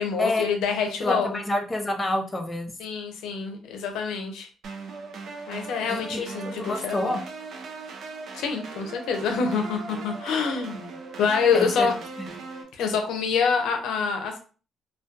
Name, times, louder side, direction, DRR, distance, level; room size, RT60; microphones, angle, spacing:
voice 1, 0.0-1.3 2.8-4.5 5.5-7.2 8.3-11.9 12.7-14.4, left 5 dB, 85° left, 5 dB, 0.5 m, -26 dB
voice 2, 1.0-2.7 5.9-7.2 11.5-11.9, left 1 dB, 20° left, 3 dB, 0.5 m, -28 dB
sound 1, 4.6-12.6, right 4 dB, 65° right, 0.5 m, -39 dB
2.3 x 2.2 x 2.5 m, 0.38 s
cardioid pair, 90°, 0 cm